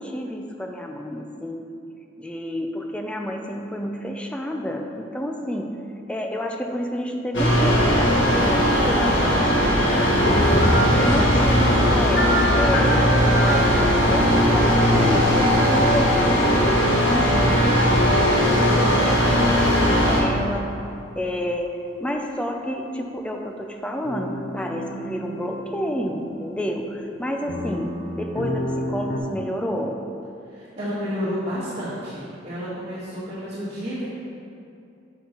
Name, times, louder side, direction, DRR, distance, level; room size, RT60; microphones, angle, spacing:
voice 1, 0.0-1.6 2.2-5.7 6.1-20.7 21.2-21.7 22.0-30.0, equal, 5° left, 2 dB, 0.3 m, -30 dB
sound 1, 7.3-20.2, equal, 80° left, 1.3 m, -18 dB
sound 2, 10.2-14.5 15.7-17.4 17.8-18.4 18.8-19.1 19.8-20.2 24.0-27.1 27.5-29.2, equal, 50° left, 0.7 m, -31 dB
voice 2, 10.9-11.6 30.5-34.1, equal, 35° right, -12 dB, 1.4 m, -30 dB
7.3 x 5.5 x 2.9 m, 2.6 s
head